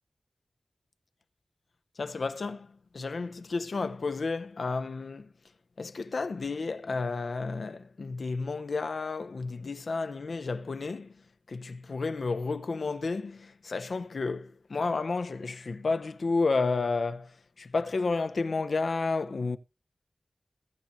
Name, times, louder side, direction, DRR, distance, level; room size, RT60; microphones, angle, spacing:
voice 1, 2.0-2.7 2.9-5.3 5.8-11.1 11.5-19.6, left 3 dB, 70° left, 0.8 m, -31 dB
20.5 x 8.8 x 2.7 m
wide cardioid pair, 90°, 0 cm